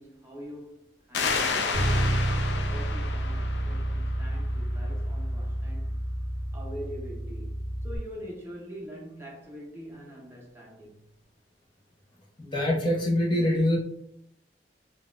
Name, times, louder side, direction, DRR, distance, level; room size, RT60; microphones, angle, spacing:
voice 1, 0.0-6.0 6.5-11.1, equal, 15° right, 0.7 m, -44 dB
sound 1, 1.1-4.5, left 4 dB, 80° left, 0.4 m, -31 dB
Bass guitar, 1.7-8.0, right 1 dB, 55° left, 1.2 m, -29 dB
voice 2, 12.4-13.8, left 1 dB, 25° left, 0.7 m, -24 dB
3.9 x 2.3 x 2.4 m
head